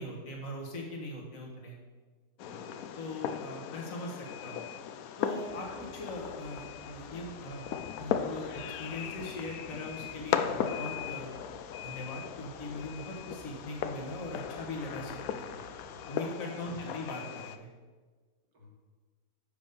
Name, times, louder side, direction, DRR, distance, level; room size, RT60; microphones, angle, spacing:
voice 1, 0.0-1.8 2.6-4.6 5.2-7.7 8.0-11.3 11.8-15.2 16.1-17.7, left 2 dB, 50° left, 0 dB, 1.8 m, -40 dB
Fireworks, 2.4-17.6, left 8 dB, 70° left, 0.9 m, -37 dB
voice 2, 2.4-2.8 15.2-15.7 16.6-17.0 18.5-18.7, left 1 dB, 80° right, -2 dB, 2.4 m, -52 dB
sound 1, 5.5-16.1, right 4 dB, 55° right, 1.6 m, -56 dB
6.9 x 5.3 x 6.6 m, 1.4 s
omnidirectional pair, 1.8 m